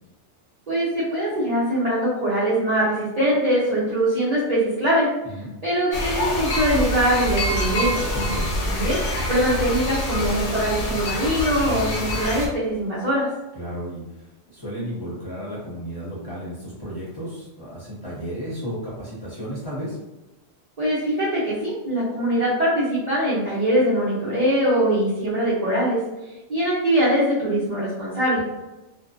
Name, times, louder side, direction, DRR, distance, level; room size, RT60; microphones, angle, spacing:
voice 1, 0.7-5.1 5.6-8.0 8.6-9.0 9.3-13.3 20.8-26.0 26.5-28.4, right 1 dB, 40° right, -9 dB, 0.6 m, -22 dB
sound 1, 5.9-12.5, left 1 dB, 70° left, 0.9 m, -26 dB
voice 2, 8.1-8.5 13.5-20.0 28.4-28.5, equal, 20° left, -10 dB, 1.0 m, -33 dB
2.4 x 2.2 x 2.4 m, 1.0 s
omnidirectional pair, 1.2 m